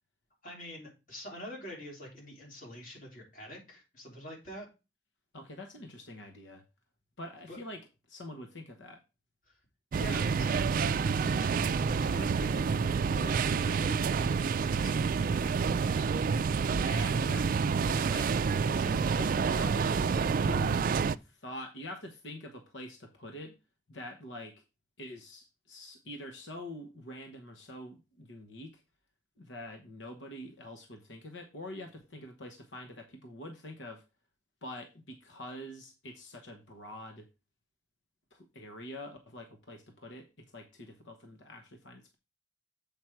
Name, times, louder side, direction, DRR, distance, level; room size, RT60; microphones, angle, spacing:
voice 1, 0.4-4.7 7.5-7.6 9.5-9.6 10.0-16.1, equal, 45° left, -1 dB, 3.6 m, -46 dB
voice 2, 5.3-6.6 7.2-9.0 16.7-20.8 21.2-23.6 23.9-24.6 25.0-28.8 29.4-34.0 34.6-37.3 38.3-42.1, left 1 dB, 90° left, 5 dB, 1.1 m, -45 dB
sound 1, 9.9-21.2, right 5 dB, 50° right, 0.3 m, -28 dB
7.6 x 5.2 x 4.5 m, 0.28 s
head